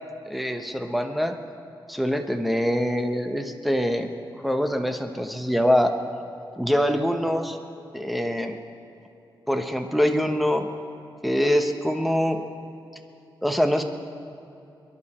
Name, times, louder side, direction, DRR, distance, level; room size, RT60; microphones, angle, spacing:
voice 1, 0.3-1.3 1.9-4.1 4.4-5.9 6.6-7.6 7.9-8.6 9.5-10.7 11.2-12.4 13.4-13.8, equal, ahead, 5 dB, 1.1 m, -24 dB
22.5 x 11.0 x 4.4 m, 2.8 s
wide cardioid pair, 100°, 8 cm